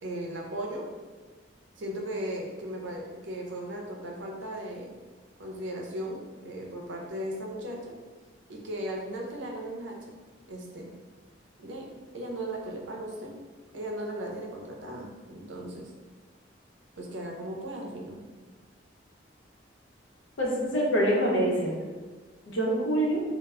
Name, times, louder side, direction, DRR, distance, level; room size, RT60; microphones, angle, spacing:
voice 1, 0.0-0.9 1.8-5.0 5.4-7.9 8.5-10.9 11.6-13.3 13.7-15.9 17.0-18.2, right 1 dB, 80° right, 0 dB, 0.5 m, -37 dB
voice 2, 20.4-21.7 22.5-23.2, right 1 dB, 90° left, -3 dB, 0.7 m, -25 dB
2.1 x 2.0 x 3.5 m, 1.3 s
head